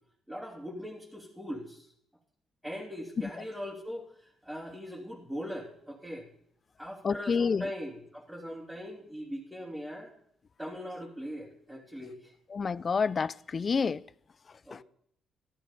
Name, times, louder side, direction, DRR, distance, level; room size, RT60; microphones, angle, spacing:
voice 1, 0.3-1.9 2.6-6.3 6.8-10.1 10.6-12.3 14.7-14.8, equal, 5° right, 3.1 m, -40 dB
voice 2, 7.0-7.7 12.5-14.1 14.5-14.8, left 5 dB, 40° left, 0.5 m, -29 dB
13.5 x 12.0 x 5.3 m
cardioid pair, 90°, 0 cm